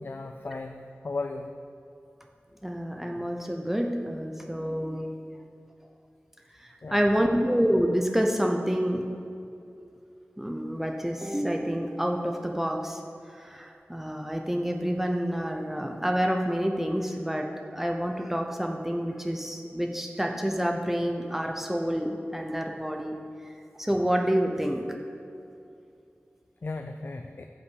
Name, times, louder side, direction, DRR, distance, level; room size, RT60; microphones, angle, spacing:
voice 1, 0.0-1.5 6.8-7.1 26.6-27.5, left 3 dB, 50° left, 5 dB, 0.5 m, -36 dB
voice 2, 2.6-5.1 6.6-9.0 10.4-13.0 13.3-23.2 23.8-24.9, equal, 5° right, 2 dB, 0.7 m, -28 dB
10.0 x 5.8 x 8.0 m, 2.6 s
wide cardioid pair, 90°, 4 cm